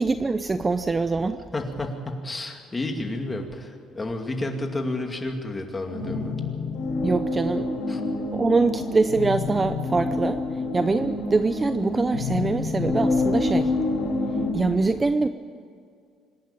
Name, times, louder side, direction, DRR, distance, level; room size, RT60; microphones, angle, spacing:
voice 1, 0.0-1.4 7.0-7.7 8.3-10.4 10.7-13.7 14.5-15.3, right 3 dB, 20° right, 10 dB, 0.6 m, -23 dB
voice 2, 1.5-6.4 7.9-8.0, left 2 dB, 20° left, 3 dB, 2.4 m, -31 dB
sound 1, 5.9-14.5, left 2 dB, 85° left, 6.7 m, -27 dB
26.0 x 11.5 x 8.9 m, 2.3 s
cardioid pair, 135°, 0 cm